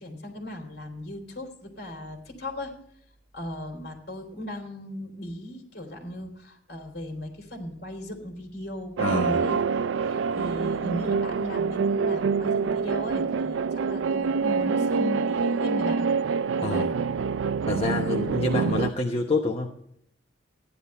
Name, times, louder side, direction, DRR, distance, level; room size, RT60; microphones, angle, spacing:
voice 1, 0.0-2.7 3.3-16.1 16.6-16.9, left 1 dB, 60° left, 3 dB, 3.4 m, -37 dB
voice 2, 9.0-9.5 16.6-16.9 17.7-19.7, left 2 dB, 30° left, 0 dB, 1.0 m, -27 dB
sound 1, 9.0-18.9, right 5 dB, 75° right, 0.4 m, -26 dB
14.5 x 10.5 x 4.3 m, 0.71 s
head